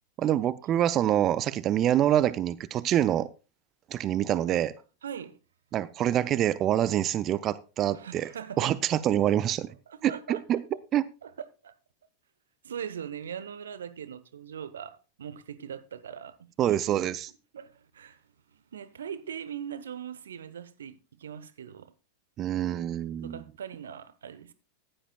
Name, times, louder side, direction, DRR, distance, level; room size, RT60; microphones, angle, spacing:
voice 1, 0.2-3.3 3.9-4.7 5.7-8.3 8.6-9.7 10.0-10.6 10.9-11.0 16.6-17.3 22.4-23.4, right 11 dB, 30° right, 0.5 m, -26 dB
voice 2, 5.0-5.4 7.9-8.8 9.9-10.4 11.2-11.7 12.6-16.4 16.7-16.9 17.5-18.2 18.5-21.9 23.2-24.5, right 8 dB, 65° right, 0.9 m, -41 dB
15.0 x 11.5 x 2.3 m
figure-of-eight pair, 90°, 0 cm